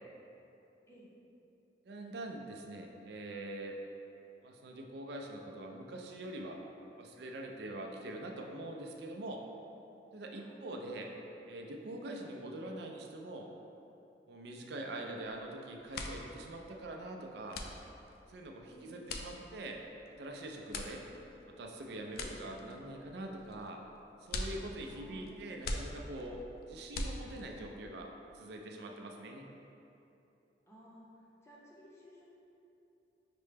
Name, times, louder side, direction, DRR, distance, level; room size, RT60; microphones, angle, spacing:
voice 1, 1.9-3.8 4.4-6.6 7.0-9.4 10.1-11.1 11.5-13.5 14.3-17.6 18.3-19.8 20.1-21.0 21.5-23.8 24.2-26.4 26.7-28.1 28.3-29.5, right 1 dB, 65° right, 2 dB, 0.4 m, -44 dB
sound 1, 15.2-15.5 15.8-27.7, left 2 dB, 60° left, 0.3 m, -43 dB
voice 2, 18.7-19.0 20.9-21.1 22.3-22.5 24.9-26.0 30.7-32.2, equal, 15° left, -6 dB, 0.7 m, -58 dB
5.9 x 2.1 x 3.2 m, 2.9 s
head